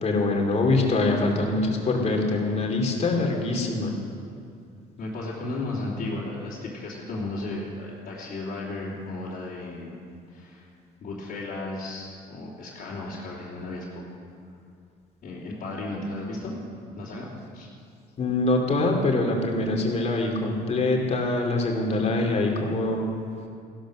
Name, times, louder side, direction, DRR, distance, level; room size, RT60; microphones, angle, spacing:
voice 1, 0.0-3.9 18.2-23.1, left 2 dB, 40° left, 1 dB, 2.8 m, -24 dB
voice 2, 5.0-9.9 10.3-10.7 11.0-14.0 15.2-16.5 17.0-17.3 17.5-17.7, left 2 dB, 55° left, -8 dB, 3.1 m, -34 dB
16.0 x 12.0 x 6.3 m, 2.4 s
cardioid pair, 110°, 17 cm